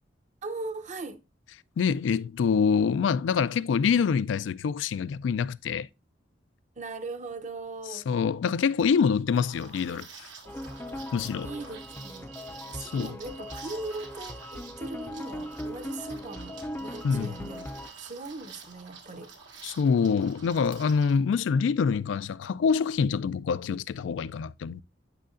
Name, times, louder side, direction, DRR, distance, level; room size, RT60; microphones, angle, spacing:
voice 1, 0.4-1.2 6.8-8.1 10.9-11.1 11.4-12.3 12.7-17.7 18.0-19.3, right 3 dB, 40° right, 0.7 m, -39 dB
voice 2, 1.8-5.9 7.9-10.1 11.1-11.5 12.8-13.2 17.0-17.3 19.6-24.8, left 6 dB, 85° left, 0.3 m, -26 dB
Liquid, 9.3-21.2, right 5 dB, 85° right, 1.6 m, -49 dB
Slow ethereal sequencer music fragment, 10.5-17.9, left 1 dB, 10° left, 0.4 m, -39 dB
Alarm, 11.4-18.3, right 8 dB, 60° right, 1.9 m, -53 dB
9.1 x 5.6 x 2.5 m
head